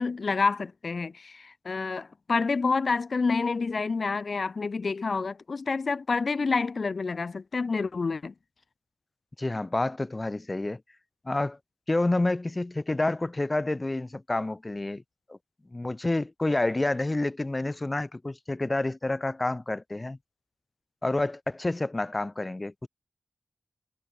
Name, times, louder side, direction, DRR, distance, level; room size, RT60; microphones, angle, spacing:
voice 1, 0.0-8.3, left 4 dB, 75° left, 1.7 m, -28 dB
voice 2, 9.4-10.8 11.2-11.6 11.9-15.0 15.3-15.4 15.7-20.2 21.0-22.9, left 2 dB, 35° left, 1.1 m, -29 dB
cardioid pair, 45°, 0 cm